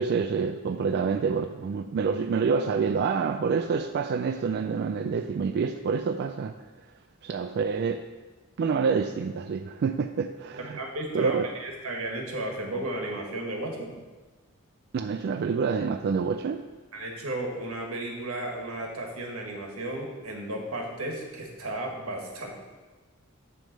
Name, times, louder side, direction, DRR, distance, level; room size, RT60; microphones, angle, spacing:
voice 1, 0.0-6.6 7.2-8.1 8.6-10.8 11.1-11.5 14.9-16.6, right 5 dB, 50° right, 7 dB, 0.3 m, -27 dB
voice 2, 10.6-13.9 16.9-22.5, right 1 dB, 85° right, 1 dB, 1.6 m, -34 dB
9.3 x 3.4 x 6.7 m, 1.3 s
head